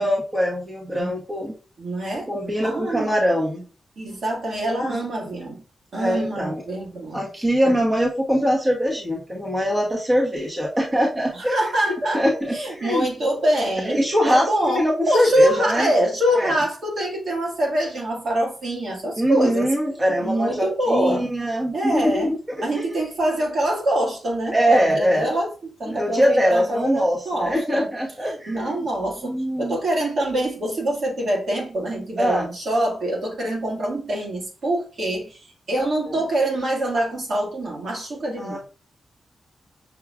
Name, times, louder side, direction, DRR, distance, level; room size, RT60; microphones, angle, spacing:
voice 1, 0.0-1.5 2.3-3.6 6.0-6.6 7.1-11.6 11.8-13.1 13.8-15.9 16.3-16.6 19.2-23.0 24.5-25.3 25.9-28.9 29.2-29.8 32.2-32.5 36.1-36.2 38.4-38.6, equal, 20° right, 0.9 m, -22 dB
voice 2, 1.8-2.3 2.6-3.1 4.0-5.6 5.9-7.2 7.6-7.7 11.3-12.2 12.5-19.7 20.2-21.3 21.7-22.3 22.6-27.9 28.3-35.4 35.7-38.6, right 1 dB, 60° right, 1.5 m, -24 dB
5.9 x 2.3 x 3.4 m
wide cardioid pair, 140°, 0 cm